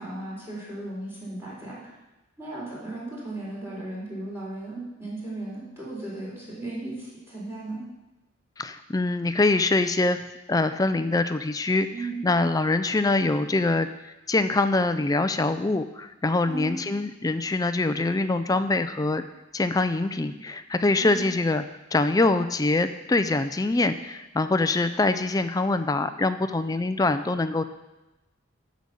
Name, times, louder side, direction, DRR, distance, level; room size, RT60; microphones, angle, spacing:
voice 1, 0.0-1.8 2.4-7.8 11.9-12.2 16.4-16.7 21.0-21.2, right 2 dB, 15° right, -7 dB, 3.8 m, -36 dB
voice 2, 8.6-10.2 10.5-11.9 12.2-13.9 14.3-19.2 19.5-21.6 21.9-27.6, left 2 dB, 20° left, 10 dB, 0.4 m, -24 dB
12.5 x 5.2 x 6.9 m, 1.0 s
head